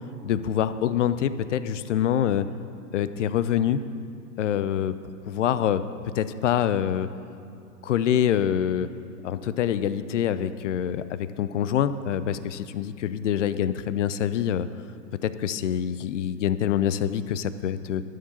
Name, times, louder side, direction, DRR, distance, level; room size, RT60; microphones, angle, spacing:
voice 1, 0.2-2.5 2.9-3.8 4.4-4.9 5.2-5.8 6.1-7.1 7.8-8.9 9.2-14.7 15.2-18.0, left 9 dB, 50° left, 13 dB, 0.6 m, -25 dB
12.5 x 6.6 x 7.1 m, 2.7 s
hypercardioid pair, 135°, 47 cm